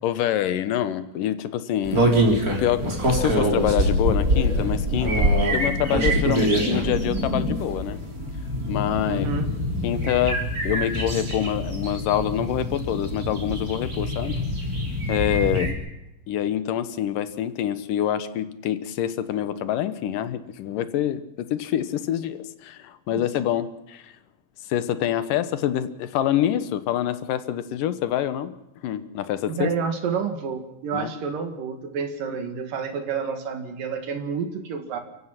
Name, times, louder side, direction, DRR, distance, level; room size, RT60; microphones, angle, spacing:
voice 1, 0.0-5.2 5.5-8.0 8.7-9.3 9.8-14.4 15.1-15.8 16.3-24.1 24.6-28.5 28.8-29.7 30.9-31.1, left 11 dB, 80° left, 12 dB, 2.7 m, -26 dB
sound 1, 1.8-15.7, equal, 25° right, 4.0 m, -24 dB
voice 2, 9.1-9.5 23.1-23.2 29.5-35.0, right 6 dB, 85° right, 6 dB, 3.5 m, -29 dB
30.0 x 15.0 x 5.9 m, 0.89 s
omnidirectional pair, 3.8 m